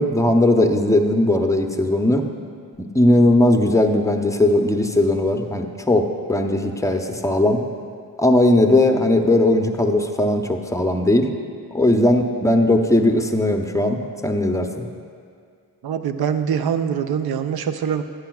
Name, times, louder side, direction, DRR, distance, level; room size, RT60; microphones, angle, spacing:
voice 1, 0.0-2.2 2.9-7.6 8.2-11.3 11.7-14.8, left 1 dB, 5° left, 4 dB, 0.7 m, -18 dB
voice 2, 15.8-18.0, right 7 dB, 60° right, 9 dB, 0.6 m, -24 dB
11.5 x 8.2 x 2.3 m, 2.2 s
supercardioid pair, 55°, 43 cm